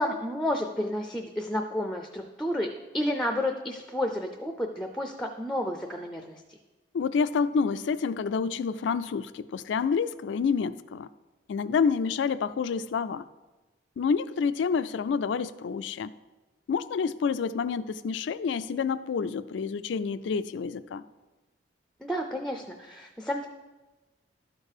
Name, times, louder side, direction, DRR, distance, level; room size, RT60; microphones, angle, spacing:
voice 1, 0.0-2.7 2.9-6.4 22.0-23.5, left 1 dB, 5° left, 5 dB, 0.4 m, -31 dB
voice 2, 6.9-11.1 11.5-13.2 14.0-16.1 16.7-21.0, left 5 dB, 80° left, 15 dB, 0.3 m, -28 dB
12.0 x 4.6 x 4.8 m, 1.2 s
head